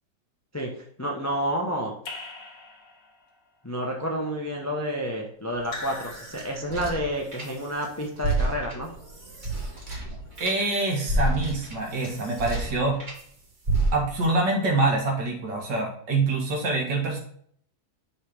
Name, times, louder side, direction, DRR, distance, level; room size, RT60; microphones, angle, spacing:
voice 1, 1.0-1.9 3.6-8.9, equal, 25° left, 0 dB, 0.3 m, -29 dB
Raindrop / Drip, 2.1-3.3 5.6-7.0, left 3 dB, 75° left, 1.8 m, -41 dB
sound 1, 5.5-7.9 8.2-13.2 13.6-14.3, right 2 dB, 30° right, 1.0 m, -30 dB
voice 2, 10.4-13.0 13.9-17.2, right 3 dB, 75° right, 0 dB, 2.1 m, -25 dB
6.4 x 3.3 x 5.0 m, 0.63 s
omnidirectional pair, 1.9 m